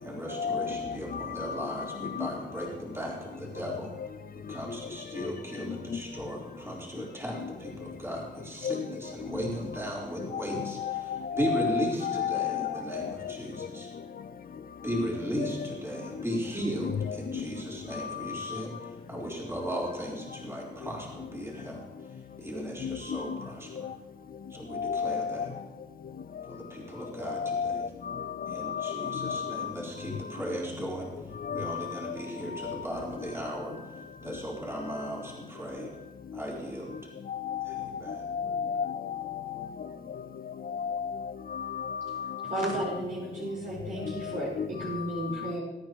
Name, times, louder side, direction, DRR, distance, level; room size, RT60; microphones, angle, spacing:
voice 1, 0.0-3.9 4.5-13.9 14.8-23.9 24.5-25.5 26.4-27.9 28.4-35.9 36.3-37.1 37.7-38.3, equal, 15° right, 4.2 m, -36 dB
voice 2, 10.3-13.1 15.4-15.5 16.8-17.2 22.8-23.4 24.8-25.3 27.4-27.8 28.6-29.7 31.5-31.8 37.3-37.9 38.3-39.6 40.7-41.1 41.5-42.3 44.4-44.7, left 7 dB, 55° left, 0.7 m, -32 dB
voice 3, 42.4-45.6, right 1 dB, 50° right, 4.9 m, -33 dB
21.5 x 9.6 x 3.2 m
cardioid pair, 75°, 18 cm